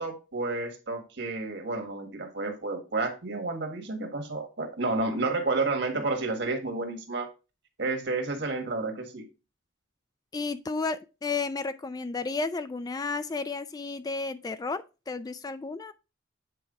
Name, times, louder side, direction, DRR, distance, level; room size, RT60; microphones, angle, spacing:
voice 1, 0.0-7.3 7.8-9.2, right 3 dB, 60° right, 1.6 m, -30 dB
voice 2, 10.3-15.9, left 3 dB, 20° left, 0.3 m, -32 dB
8.4 x 4.6 x 3.6 m
head